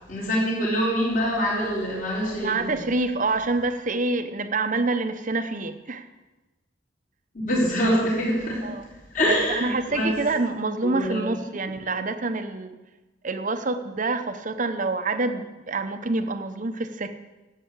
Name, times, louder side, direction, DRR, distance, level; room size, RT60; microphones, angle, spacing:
voice 1, 0.1-2.7 7.3-8.6 9.1-10.2 10.8-11.4, equal, 45° left, -7 dB, 4.0 m, -24 dB
voice 2, 2.4-6.1 8.6-8.9 9.5-12.8 13.2-17.1, right 3 dB, 45° right, 9 dB, 0.9 m, -27 dB
12.5 x 8.5 x 8.2 m, 1.1 s
head